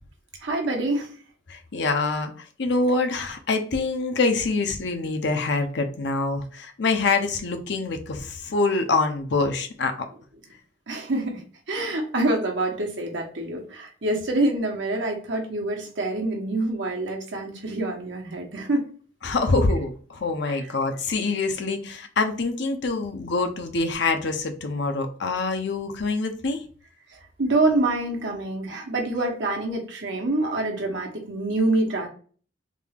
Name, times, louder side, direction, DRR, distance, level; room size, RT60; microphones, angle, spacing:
voice 1, 0.4-1.1 10.9-18.9 27.4-32.1, right 2 dB, 75° right, 1 dB, 1.1 m, -26 dB
voice 2, 1.5-9.9 19.2-26.6, left 3 dB, 65° left, 6 dB, 0.7 m, -25 dB
3.7 x 2.4 x 3.4 m, 0.42 s
head